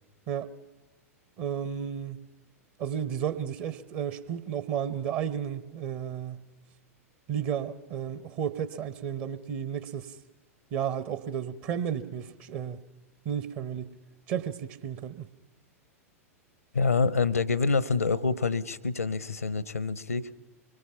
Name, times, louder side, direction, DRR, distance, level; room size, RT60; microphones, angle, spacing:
voice 1, 1.4-2.2 2.8-6.4 7.3-10.2 10.7-12.8 13.2-13.9 14.3-15.3, right 9 dB, 40° right, 15 dB, 1.1 m, -33 dB
voice 2, 16.7-20.3, left 4 dB, 80° left, 20 dB, 0.8 m, -26 dB
25.0 x 22.0 x 5.8 m, 1.2 s
figure-of-eight pair, 95°, 8 cm